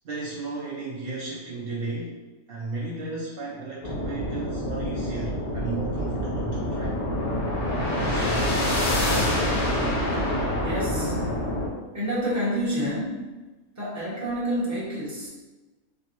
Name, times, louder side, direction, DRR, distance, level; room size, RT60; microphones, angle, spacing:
voice 1, 0.0-2.2 2.5-7.0 7.9-9.0, right 3 dB, 85° right, -5 dB, 0.5 m, -34 dB
sound 1, 3.8-11.7, left 1 dB, 85° left, 1.3 m, -26 dB
voice 2, 10.6-11.1 11.9-13.2 13.8-15.3, equal, 15° right, -8 dB, 0.7 m, -28 dB
3.4 x 2.0 x 2.9 m, 1.2 s
omnidirectional pair, 1.5 m